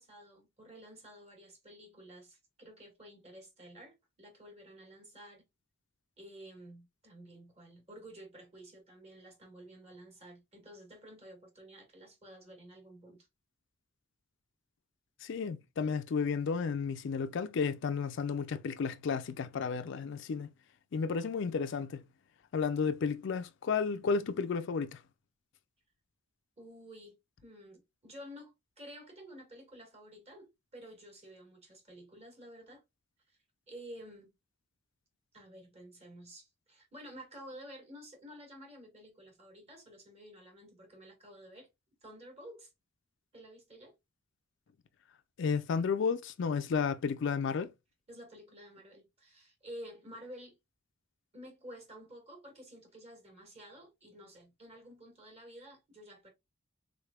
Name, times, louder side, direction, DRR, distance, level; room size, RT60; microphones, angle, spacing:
voice 1, 0.0-5.4 6.2-13.3 26.6-32.8 33.3-33.4 33.7-34.3 35.3-41.7 42.0-42.7 43.3-43.9 48.1-50.6 51.3-56.3, equal, 35° right, 1.6 m, -51 dB
voice 2, 15.2-20.5 20.9-22.0 22.5-25.0 45.4-47.7, left 5 dB, 65° left, 0.4 m, -32 dB
3.6 x 3.3 x 2.3 m
head